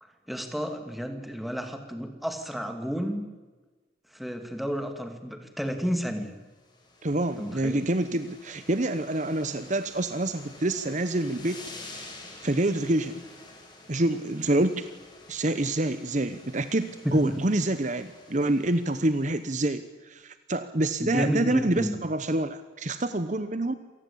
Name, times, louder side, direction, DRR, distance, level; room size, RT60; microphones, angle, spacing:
voice 1, 0.0-3.3 4.1-6.3 7.4-7.8 17.0-17.4 21.0-21.9, equal, ahead, 6 dB, 2.5 m, -31 dB
sound 1, 6.5-19.7, left 2 dB, 25° left, 6.0 m, -49 dB
voice 2, 7.0-11.6 12.0-12.1 12.4-13.2 13.9-14.8 15.3-23.7, right 1 dB, 40° right, 11 dB, 1.0 m, -27 dB
27.0 x 19.0 x 8.7 m, 1.3 s
head